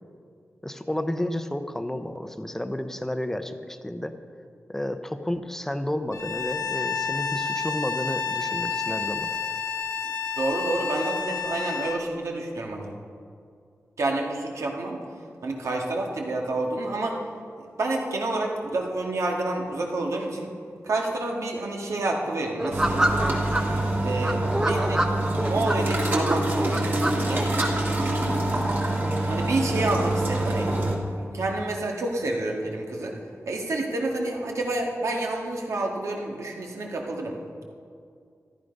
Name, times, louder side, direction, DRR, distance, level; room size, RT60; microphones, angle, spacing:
voice 1, 0.6-4.2 4.7-9.3, left 1 dB, 10° left, 9 dB, 0.7 m, -31 dB
Bowed string instrument, 6.1-12.0, left 5 dB, 70° left, 0.8 m, -30 dB
voice 2, 10.4-12.9 14.0-15.0 15.4-17.2 17.8-20.5 20.8-23.1 24.0-25.1 25.4-27.6 29.3-30.7 31.3-33.2 33.5-37.4, right 2 dB, 80° right, 0 dB, 1.9 m, -28 dB
sound 1, 22.6-23.6 24.2-25.8 26.2-27.7, right 1 dB, 10° right, 1.0 m, -26 dB
sound 2, 22.7-31.0, right 1 dB, 45° right, 2.2 m, -26 dB
14.0 x 11.5 x 5.3 m, 2.3 s
wide cardioid pair, 130°, 5 cm